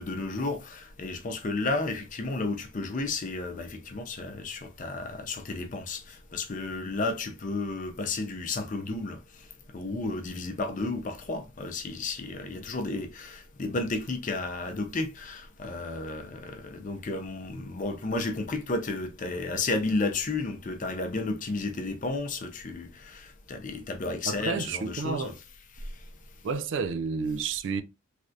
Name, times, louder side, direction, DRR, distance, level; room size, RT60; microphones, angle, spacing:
voice 1, 0.0-9.2 9.7-25.3, left 3 dB, 40° left, 0.5 m, -32 dB
voice 2, 24.3-25.4 26.4-27.8, right 5 dB, 60° right, 0.3 m, -30 dB
3.2 x 2.4 x 2.6 m
head